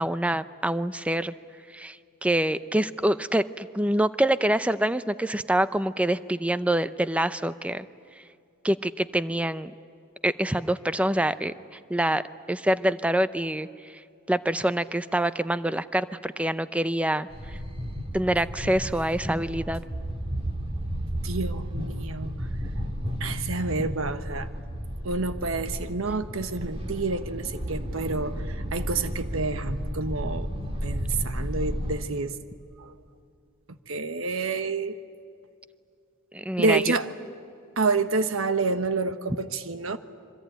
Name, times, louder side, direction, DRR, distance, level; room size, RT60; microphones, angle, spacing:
voice 1, 0.0-1.3 1.7-2.0 2.2-7.8 8.6-9.7 10.2-11.5 11.9-12.2 12.5-13.7 14.3-17.3 18.1-19.8 36.3-37.0, right 1 dB, 5° right, 13 dB, 0.6 m, -25 dB
sound 1, 17.3-32.0, equal, 30° right, 2.1 m, -33 dB
voice 2, 21.2-22.3 23.2-24.5 25.0-30.5 30.8-32.3 32.8-32.9 33.9-35.0 36.6-37.1 37.8-40.0, right 3 dB, 70° right, 10 dB, 1.3 m, -28 dB
26.0 x 24.0 x 9.2 m, 2.5 s
head